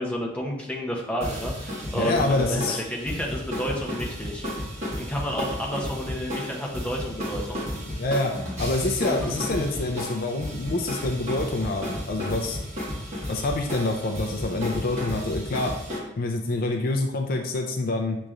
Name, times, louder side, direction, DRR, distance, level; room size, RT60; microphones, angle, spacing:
voice 1, 0.0-4.4 5.0-7.6 9.0-9.4, equal, 5° left, -1 dB, 0.7 m, -30 dB
sound 1, 1.2-16.0, left 1 dB, 35° right, 1.6 m, -33 dB
voice 2, 1.9-2.8 7.9-8.3 8.6-12.6 13.3-15.7 16.2-18.2, left 2 dB, 50° left, 3 dB, 0.4 m, -26 dB
6.4 x 3.0 x 2.4 m, 0.86 s
head